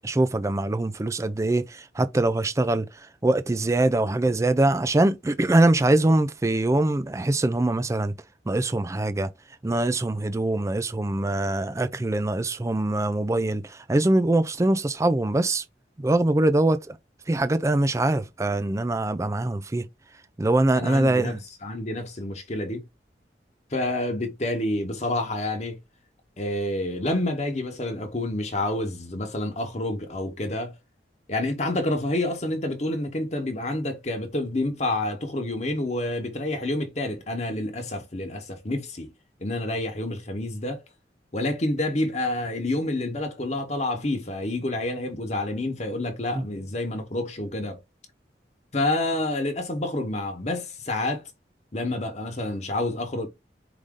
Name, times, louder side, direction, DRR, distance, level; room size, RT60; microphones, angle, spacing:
voice 1, 0.0-8.1 8.5-9.3 9.6-15.6 16.0-17.0 17.3-19.9 20.4-21.4 46.3-46.5, right 2 dB, 15° right, 0.4 m, -23 dB
voice 2, 20.7-21.4 21.6-22.8 23.7-25.8 26.4-30.7 31.3-39.1 39.4-40.8 41.3-47.8 48.7-51.2 51.7-53.3, left 1 dB, 40° left, 1.0 m, -28 dB
4.8 x 2.6 x 3.7 m
head